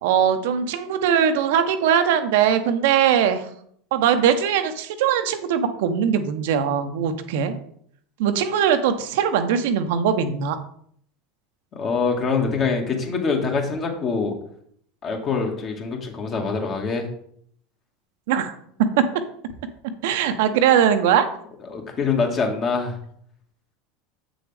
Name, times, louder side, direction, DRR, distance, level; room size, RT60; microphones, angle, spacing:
voice 1, 0.0-3.5 3.9-7.5 8.2-10.6 18.3-18.6 19.0-19.1 20.0-21.3, right 8 dB, 65° right, 8 dB, 0.7 m, -20 dB
voice 2, 11.7-14.3 15.0-17.1 21.7-23.0, left 4 dB, 40° left, 2 dB, 1.9 m, -24 dB
7.9 x 6.3 x 3.4 m, 0.66 s
hypercardioid pair, 80°, 0 cm